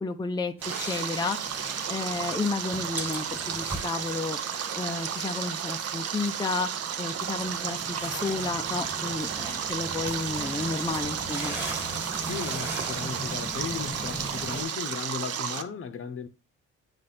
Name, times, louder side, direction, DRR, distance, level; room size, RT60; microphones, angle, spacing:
voice 1, 0.0-1.4 1.9-4.4 4.7-6.7 7.0-11.5, left 3 dB, 15° left, 0.5 m, -32 dB
sound 1, 0.6-14.6, right 1 dB, 5° right, 1.6 m, -39 dB
Stream, 0.6-15.6, right 8 dB, 55° right, 0.7 m, -33 dB
voice 2, 12.2-16.3, left 6 dB, 45° left, 0.8 m, -36 dB
8.5 x 3.2 x 4.2 m
cardioid pair, 90°, 30 cm